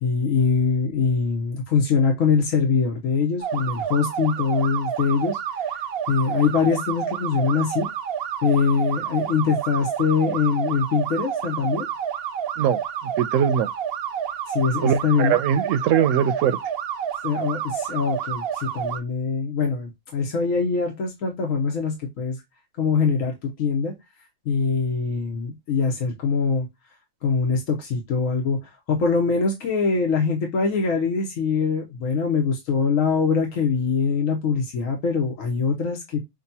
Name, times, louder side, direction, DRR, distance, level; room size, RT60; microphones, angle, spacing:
voice 1, 0.0-5.4 6.1-7.9 8.4-11.9 14.5-15.3 17.2-22.4 22.8-24.0 24.4-26.7 27.2-36.2, left 5 dB, 85° left, 1.4 m, -23 dB
sound 1, 3.4-19.0, right 9 dB, 60° right, 0.7 m, -29 dB
voice 2, 13.2-13.7 14.8-16.6, right 8 dB, 80° right, 1.0 m, -21 dB
6.4 x 2.3 x 2.7 m
omnidirectional pair, 1.3 m